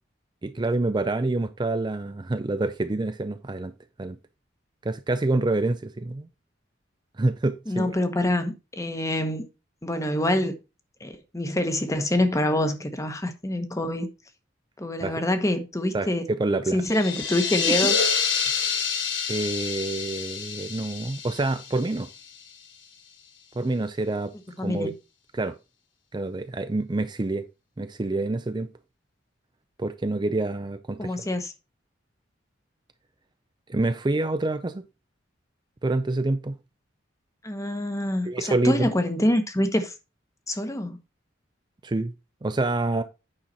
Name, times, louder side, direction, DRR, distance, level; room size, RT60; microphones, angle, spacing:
voice 1, 0.4-3.7 4.0-4.2 4.8-6.3 7.2-7.9 15.0-15.1 15.9-16.8 17.7-17.9 18.6-18.8 19.3-22.1 23.6-24.3 24.6-24.9 25.3-25.6 26.1-27.4 27.8-28.7 29.8-31.2 33.7-34.8 35.8-36.6 38.3-38.9 41.8-42.1 42.4-43.0, right 2 dB, 25° right, 0.5 m, -27 dB
voice 2, 7.7-9.5 9.8-10.5 11.0-14.1 14.8-16.2 16.7-18.0 24.6-24.9 31.0-31.5 37.4-39.9 40.5-41.0, left 1 dB, 15° left, 1.1 m, -26 dB
sound 1, 16.8-22.5, left 6 dB, 70° left, 1.7 m, -28 dB
8.9 x 5.7 x 4.0 m
head